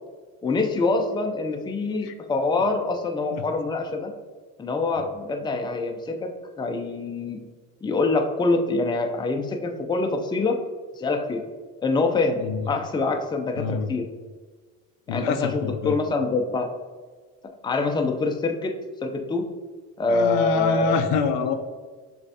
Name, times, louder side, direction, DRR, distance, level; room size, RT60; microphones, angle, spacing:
voice 1, 0.4-4.1 4.6-6.3 6.6-7.4 7.8-10.6 11.0-11.4 11.8-14.0 15.1-16.7 17.6-18.7 19.0-19.4 20.0-21.0, left 3 dB, 10° left, 3 dB, 0.5 m, -25 dB
voice 2, 13.6-13.9 15.1-16.0 20.1-21.5, left 5 dB, 75° left, 7 dB, 0.6 m, -26 dB
6.6 x 2.5 x 2.7 m, 1.4 s
supercardioid pair, 75°, 40 cm